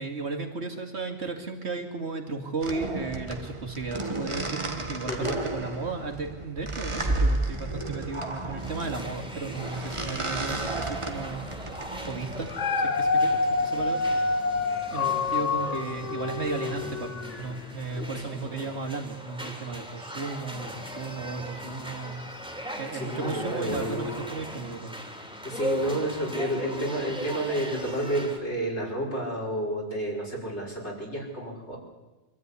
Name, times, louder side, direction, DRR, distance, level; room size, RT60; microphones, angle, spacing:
voice 1, 0.0-11.4 11.9-12.5 12.8-14.0 14.9-22.4 22.8-25.0, right 3 dB, 65° right, 4 dB, 2.8 m, -35 dB
sound 1, 2.6-12.5, right 2 dB, 25° right, 1.5 m, -32 dB
sound 2, 8.6-28.4, equal, 5° right, 3.1 m, -39 dB
Dog, 12.3-17.7 18.2-18.3, left 3 dB, 90° left, 1.7 m, -27 dB
voice 2, 18.0-18.4 22.9-24.2 25.4-31.8, right 1 dB, 70° left, -2 dB, 5.7 m, -30 dB
25.0 x 13.0 x 9.8 m, 1.1 s
omnidirectional pair, 1.2 m